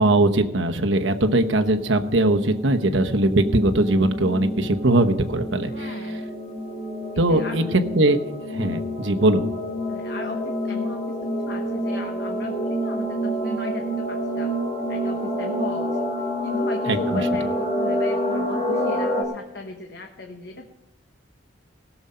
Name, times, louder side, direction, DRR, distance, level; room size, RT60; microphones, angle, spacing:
voice 1, 0.0-5.9 7.2-8.2 8.5-9.5 16.9-17.2, right 2 dB, 85° right, 6 dB, 1.1 m, -20 dB
sound 1, 0.9-19.2, equal, 35° left, 1.9 m, -28 dB
voice 2, 5.7-6.3 7.3-7.6 9.9-14.5 14.9-16.1 16.4-20.7, left 2 dB, 55° left, 3 dB, 1.1 m, -36 dB
17.5 x 7.1 x 5.6 m, 0.94 s
head